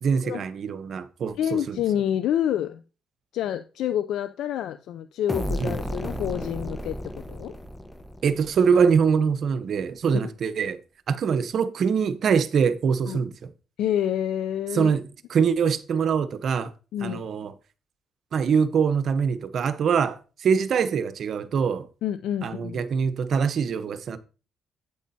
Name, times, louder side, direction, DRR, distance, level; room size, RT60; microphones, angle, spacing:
voice 1, 0.0-1.8 5.6-5.7 8.2-10.8 11.1-13.5 14.7-15.0 15.3-16.7 17.0-17.5 18.3-21.9 22.4-24.2, right 6 dB, 60° right, 0.8 m, -23 dB
voice 2, 1.4-2.8 3.3-7.6 13.1-13.2 13.8-14.9 16.9-17.2 22.0-22.8, left 10 dB, 80° left, 0.4 m, -28 dB
sound 1, 5.3-8.9, equal, 10° left, 0.9 m, -33 dB
8.4 x 8.3 x 2.7 m
cardioid pair, 90°, 0 cm